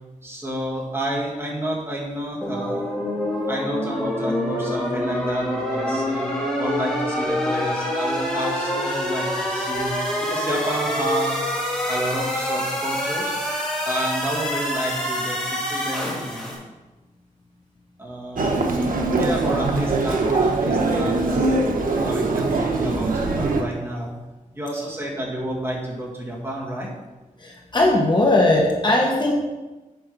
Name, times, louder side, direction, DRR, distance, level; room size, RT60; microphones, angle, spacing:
voice 1, 0.2-2.9 3.5-6.3 6.6-10.0 10.2-11.5 11.9-13.3 13.9-16.6 18.0-18.8 19.1-21.6 22.0-24.1 24.5-26.9, right 1 dB, 15° right, -4 dB, 1.8 m, -30 dB
sound 1, 2.4-16.5, left 1 dB, 5° left, 2.3 m, -26 dB
Human voice, 18.4-23.6, right 3 dB, 85° right, 1.0 m, -22 dB
voice 2, 27.4-29.3, left 2 dB, 35° left, -1 dB, 1.1 m, -19 dB
8.4 x 5.0 x 5.4 m, 1.2 s
wide cardioid pair, 175°, 14 cm